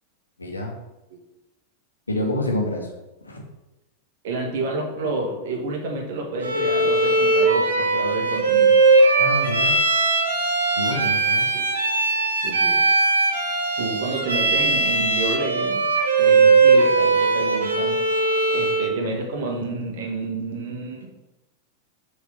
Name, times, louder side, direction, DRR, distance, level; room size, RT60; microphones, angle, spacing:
voice 1, 0.4-0.7 2.1-2.9 3.2-3.4 9.2-9.8 10.7-11.5, left 1 dB, 80° left, 0 dB, 1.5 m, -27 dB
voice 2, 4.2-8.8 11.5-11.6 12.4-12.8 13.8-15.9 16.2-18.1 18.5-21.1, right 2 dB, 55° right, 1 dB, 1.8 m, -29 dB
Bowed string instrument, 6.4-18.9, right 3 dB, 70° right, 1.4 m, -19 dB
6.7 x 4.2 x 5.4 m, 0.98 s
figure-of-eight pair, 90°, 0 cm